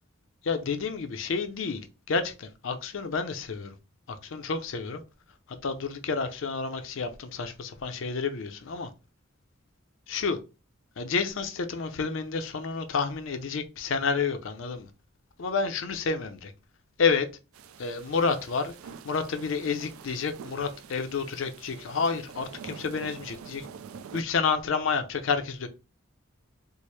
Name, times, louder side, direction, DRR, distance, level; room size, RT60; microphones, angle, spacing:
voice 1, 0.4-1.8 2.1-3.8 4.1-5.0 5.5-8.9 10.1-10.4 11.0-14.9 15.4-16.5 17.0-17.3 17.8-18.7 19.0-23.7 24.1-25.7, left 5 dB, 65° left, 0.5 m, -29 dB
sound 1, 17.5-24.2, right 6 dB, 85° right, 0.3 m, -46 dB
4.4 x 2.0 x 3.1 m
head